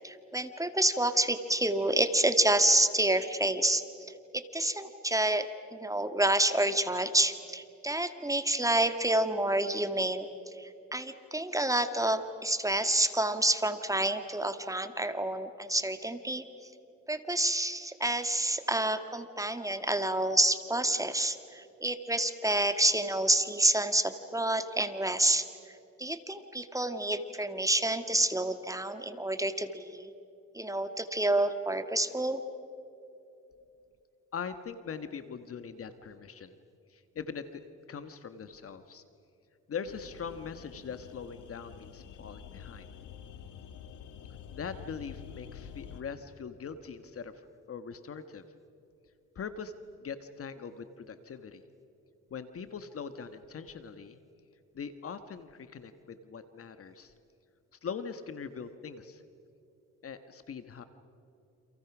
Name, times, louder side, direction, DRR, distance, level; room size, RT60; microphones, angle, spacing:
voice 1, 0.0-10.3 10.6-16.4 17.1-25.5 26.0-30.1 30.5-32.4, right 1 dB, 10° right, 9 dB, 1.8 m, -28 dB
voice 2, 34.3-36.5 36.9-37.6 37.9-39.0 39.7-42.9 44.6-47.3 47.7-48.4 49.3-49.7 50.0-51.6 52.3-54.2 54.7-57.1 57.8-59.2 60.0-60.8, left 6 dB, 50° left, 10 dB, 1.4 m, -41 dB
sound 1, 39.9-46.0, left 8 dB, 85° left, 1.9 m, -48 dB
29.5 x 28.0 x 6.1 m, 2.7 s
cardioid pair, 90°, 30 cm